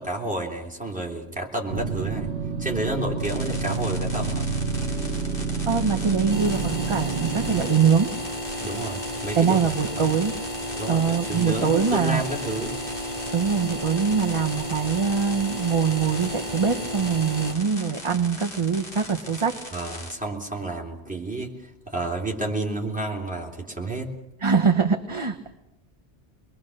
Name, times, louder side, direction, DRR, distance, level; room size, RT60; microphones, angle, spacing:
voice 1, 0.0-2.3 2.6-4.5 8.6-9.6 9.9-10.0 10.8-12.7 19.7-21.5 21.9-24.1, right 2 dB, 5° right, -2 dB, 3.4 m, -30 dB
sound 1, 1.7-7.7, right 5 dB, 80° right, 1.5 m, -28 dB
sound 2, 3.2-20.2, left 1 dB, 55° left, 3.1 m, -40 dB
voice 2, 5.7-8.1 9.4-10.3 10.9-12.2 13.3-19.6 24.4-25.5, right 6 dB, 30° right, 4 dB, 1.0 m, -23 dB
sound 3, 6.3-17.5, equal, 40° left, 2.6 m, -33 dB
26.0 x 22.0 x 6.5 m, 0.89 s
omnidirectional pair, 1.1 m